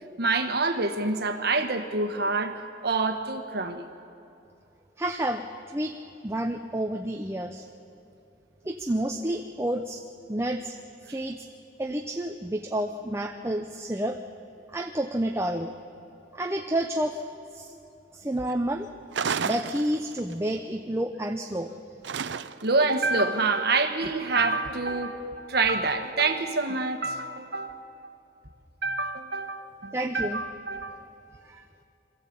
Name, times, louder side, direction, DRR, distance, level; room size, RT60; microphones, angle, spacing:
voice 1, 0.2-2.5 2.8-3.8 22.6-28.2 28.8-31.0, right 3 dB, 60° right, 7 dB, 1.3 m, -27 dB
voice 2, 5.0-6.0 6.2-7.7 8.6-10.0 10.3-10.8 11.0-11.5 11.8-14.2 14.7-15.7 16.3-17.2 17.5-17.7 18.1-18.9 19.4-21.7 29.9-30.4 31.4-31.6, right 1 dB, 15° right, 4 dB, 0.7 m, -30 dB
sound 1, 19.1-20.3 22.0-22.8, right 6 dB, 80° right, 0.6 m, -31 dB
22.5 x 14.5 x 8.6 m, 2.8 s
head